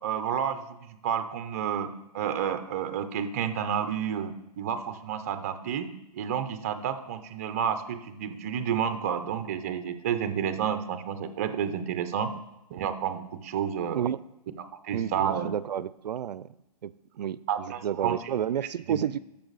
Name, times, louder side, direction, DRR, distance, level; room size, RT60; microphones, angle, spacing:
voice 1, 0.0-12.3 12.7-14.0 14.6-15.5 17.5-18.2 18.9-19.0, right 8 dB, 25° right, 10 dB, 0.5 m, -30 dB
voice 2, 14.9-16.5 16.8-16.9 17.2-19.2, right 9 dB, 85° right, 19 dB, 0.4 m, -31 dB
12.0 x 6.8 x 4.0 m, 0.90 s
hypercardioid pair, 165°, 21 cm